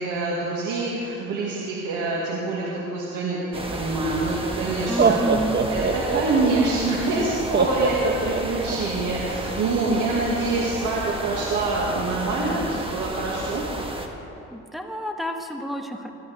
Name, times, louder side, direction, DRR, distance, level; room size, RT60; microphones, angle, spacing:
voice 1, 0.0-13.7, right 3 dB, 85° right, -5 dB, 2.2 m, -26 dB
sound 1, 3.5-14.1, right 1 dB, 20° right, 1.5 m, -32 dB
Laughter, 4.1-4.2 4.8-6.5 7.5-8.8, right 4 dB, 35° right, 1.2 m, -22 dB
voice 2, 4.9-5.6 14.5-16.1, equal, ahead, 2 dB, 1.4 m, -30 dB
21.5 x 13.5 x 3.5 m, 2.9 s
cardioid pair, 90°, 30 cm